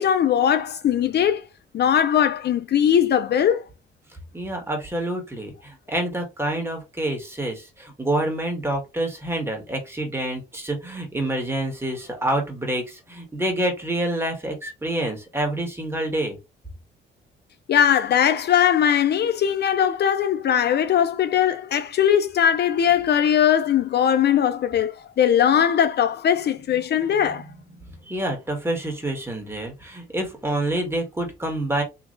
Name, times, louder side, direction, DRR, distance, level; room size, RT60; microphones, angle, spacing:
voice 1, 0.0-1.5 1.7-3.6 17.7-27.5, left 9 dB, 55° left, 0.5 m, -20 dB
voice 2, 4.3-16.4 27.8-31.8, right 1 dB, 10° right, 2.1 m, -27 dB
4.1 x 3.1 x 3.3 m
cardioid pair, 90°, 20 cm